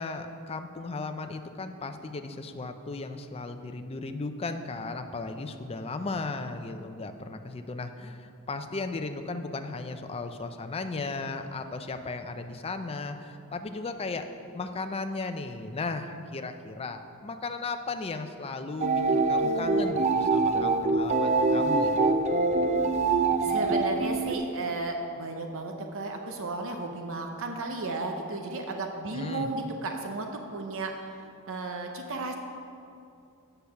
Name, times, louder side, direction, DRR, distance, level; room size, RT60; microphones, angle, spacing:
voice 1, 0.0-14.2 14.5-22.1 29.1-29.5, left 3 dB, 25° left, 7 dB, 0.5 m, -36 dB
sound 1, 18.8-24.4, right 3 dB, 30° right, 0.5 m, -24 dB
voice 2, 23.4-30.9 31.5-32.3, right 3 dB, 65° right, 3 dB, 0.7 m, -34 dB
8.3 x 6.8 x 5.7 m, 2.6 s
head